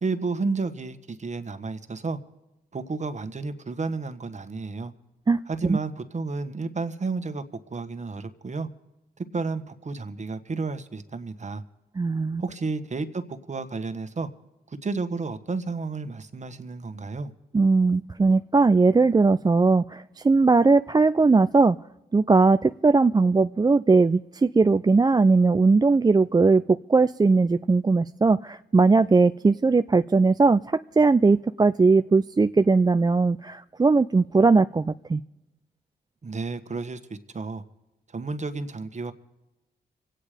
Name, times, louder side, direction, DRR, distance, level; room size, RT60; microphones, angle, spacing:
voice 1, 0.0-2.2 2.7-4.9 5.5-7.4 7.7-8.7 9.2-11.6 12.4-14.3 14.7-17.3 36.2-37.6 38.1-39.1, right 4 dB, 40° right, 1.3 m, -31 dB
voice 2, 5.3-5.8 12.0-12.4 17.5-21.8 22.1-35.2, right 3 dB, 20° right, 0.4 m, -19 dB
25.0 x 9.0 x 5.0 m
supercardioid pair, 50°, 18 cm